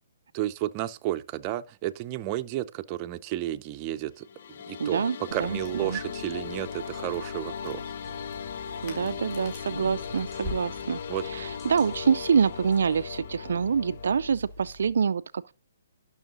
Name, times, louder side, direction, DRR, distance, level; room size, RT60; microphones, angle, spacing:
voice 1, 0.3-5.0 5.3-7.8 9.0-9.1 11.1-11.5, right 14 dB, 30° right, 0.6 m, -32 dB
sound 1, 4.1-14.3, left 7 dB, 60° left, 0.6 m, -38 dB
voice 2, 4.8-6.0 8.8-11.0 11.3-15.5, right 6 dB, 70° right, 0.4 m, -26 dB
Crackle, 5.3-14.9, left 3 dB, 40° left, 5.0 m, -44 dB
sound 2, 8.0-13.1, left 1 dB, 15° left, 3.6 m, -54 dB
12.0 x 6.3 x 3.8 m
hypercardioid pair, 145°, 0 cm